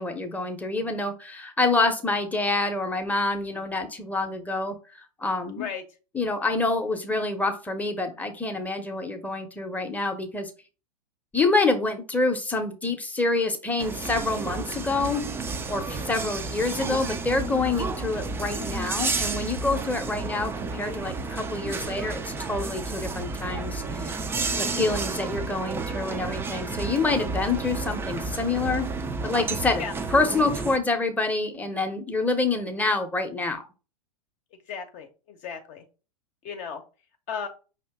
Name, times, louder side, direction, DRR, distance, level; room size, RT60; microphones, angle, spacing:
voice 1, 0.0-4.7 5.2-5.7 6.1-10.5 11.3-15.2 15.7-24.1 24.6-28.9 29.2-29.8 30.1-33.6, left 3 dB, 5° left, 5 dB, 0.8 m, -27 dB
sound 1, 13.8-30.8, right 3 dB, 10° right, 0.4 m, -31 dB
voice 2, 34.7-35.8 36.4-36.8 37.3-37.5, left 6 dB, 40° left, 5 dB, 0.8 m, -35 dB
5.2 x 2.9 x 3.4 m, 0.33 s
figure-of-eight pair, 95°, 20 cm